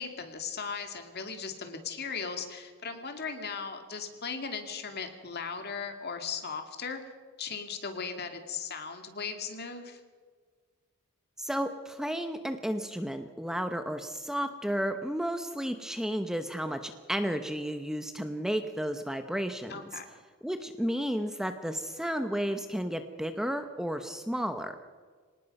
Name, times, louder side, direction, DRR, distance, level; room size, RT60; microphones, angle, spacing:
voice 1, 0.0-7.0 7.4-10.0 19.7-20.1, left 5 dB, 50° left, 6 dB, 2.3 m, -37 dB
voice 2, 11.4-20.0 20.4-24.8, equal, ahead, 7 dB, 0.8 m, -32 dB
25.0 x 19.0 x 5.4 m, 1.5 s
head